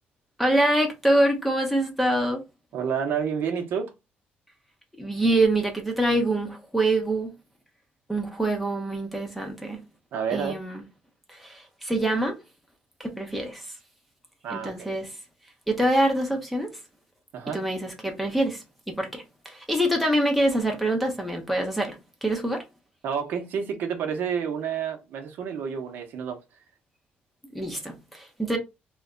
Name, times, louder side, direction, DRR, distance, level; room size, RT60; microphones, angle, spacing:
voice 1, 0.4-2.4 5.0-7.3 8.1-9.8 10.3-10.8 11.3-12.4 13.0-13.7 14.5-15.1 15.7-16.7 17.5-22.6 27.5-28.6, right 1 dB, ahead, 0.7 m, -25 dB
voice 2, 2.7-3.9 10.1-10.6 14.4-14.9 17.3-17.6 23.0-26.4, right 7 dB, 65° right, 0.8 m, -29 dB
3.1 x 2.1 x 3.7 m
cardioid pair, 165°, 4 cm